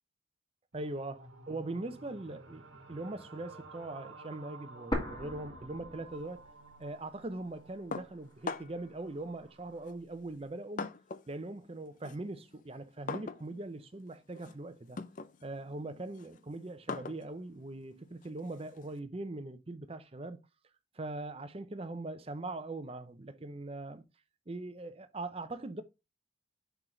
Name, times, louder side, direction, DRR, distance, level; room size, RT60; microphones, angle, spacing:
voice 1, 0.7-2.6 2.9-6.4 6.8-10.9 11.3-15.0 15.4-20.4 20.9-24.0 24.5-25.8, right 2 dB, 30° right, 0.6 m, -41 dB
sound 1, 0.7-9.9, right 3 dB, 70° right, 1.3 m, -54 dB
sound 2, 4.9-6.9 7.1-7.2 8.0-8.9, equal, 20° left, 1.7 m, -39 dB
sound 3, 7.9-8.9 9.8-11.4 11.7-19.0, left 4 dB, 40° left, 0.4 m, -44 dB
5.9 x 4.6 x 3.8 m
head